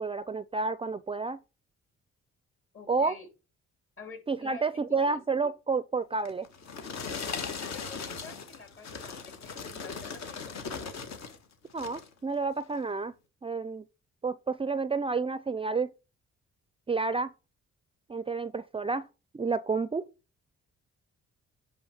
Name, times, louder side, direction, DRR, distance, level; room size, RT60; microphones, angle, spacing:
voice 1, 0.0-1.4 2.9-3.2 4.3-6.5 11.7-13.1 13.4-13.8 14.2-15.9 16.9-17.3 18.1-19.1 19.3-20.0, right 4 dB, 20° right, 0.4 m, -30 dB
voice 2, 2.7-3.3 4.0-5.2 7.5-10.9, left 4 dB, 45° left, 3.5 m, -49 dB
sound 1, 6.3-11.4 11.7-12.1 12.7-12.8, left 5 dB, 65° left, 1.5 m, -38 dB
10.0 x 3.4 x 6.1 m
cardioid pair, 85°, 29 cm